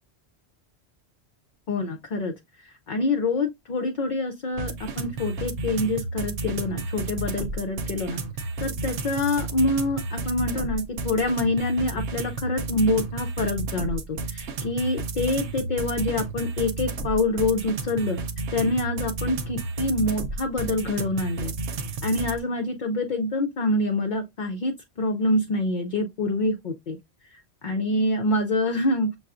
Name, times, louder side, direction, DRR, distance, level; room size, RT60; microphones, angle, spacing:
voice 1, 1.7-2.3 2.9-8.2 8.6-18.2 18.5-21.5 22.0-27.0 27.6-29.1, left 2 dB, 55° left, 0.6 m, -26 dB
sound 1, 4.6-22.4, right 3 dB, 85° right, 1.0 m, -32 dB
6.6 x 2.3 x 2.4 m
omnidirectional pair, 1.1 m